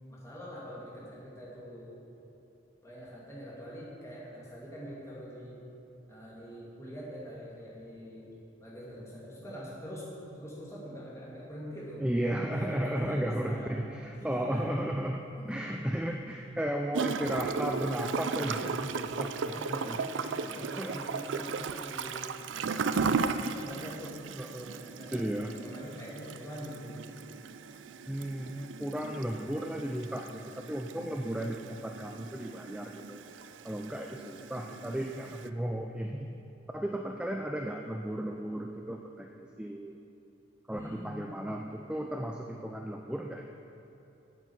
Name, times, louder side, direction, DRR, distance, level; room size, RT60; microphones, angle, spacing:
voice 1, 0.1-2.0 2.8-5.6 6.1-8.3 8.6-10.1 10.3-12.0 12.5-13.7 14.1-14.8 15.4-15.8 19.4-24.2 24.7-27.0 28.7-29.1 40.7-41.3, equal, 15° left, -6 dB, 2.4 m, -44 dB
voice 2, 12.0-15.2 15.5-20.0 20.4-21.3 24.3-24.8 25.1-25.5 28.1-33.3 33.6-36.3 36.7-40.0 40.7-43.5, right 1 dB, 5° right, 2 dB, 0.4 m, -35 dB
Gurgling / Toilet flush, 16.9-35.5, right 5 dB, 75° right, 0.4 m, -36 dB
9.1 x 8.3 x 7.1 m, 2.9 s
head